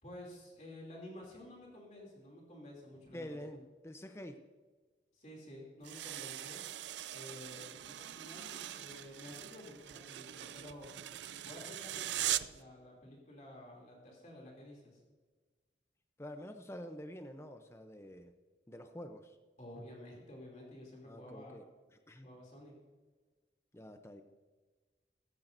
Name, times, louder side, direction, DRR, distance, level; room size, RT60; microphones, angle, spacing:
voice 1, 0.0-3.6 5.1-6.6 7.1-10.9 11.4-15.0 19.6-21.6 22.2-22.8, left 1 dB, 40° left, -1 dB, 2.9 m, -51 dB
voice 2, 3.1-4.4 16.2-18.3 18.7-19.4 21.0-21.6 22.1-22.3 23.7-24.2, equal, 15° left, 7 dB, 0.6 m, -47 dB
sound 1, 5.8-12.6, right 13 dB, 80° right, 0.4 m, -41 dB
15.0 x 14.5 x 2.6 m, 1.3 s
head